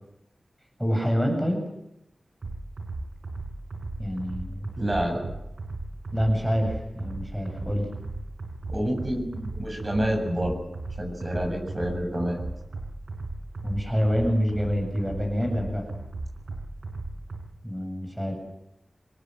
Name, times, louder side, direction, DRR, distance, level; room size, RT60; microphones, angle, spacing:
voice 1, 0.8-1.6 4.0-4.7 6.1-7.9 13.6-15.9 17.6-18.4, equal, 5° right, 2 dB, 7.7 m, -26 dB
sound 1, 2.4-17.4, right 2 dB, 70° right, 5.5 m, -36 dB
voice 2, 4.8-5.2 8.7-10.6 11.0-12.4, equal, 30° right, 1 dB, 7.7 m, -28 dB
26.5 x 19.0 x 7.9 m, 0.84 s
wide cardioid pair, 95°, 0 cm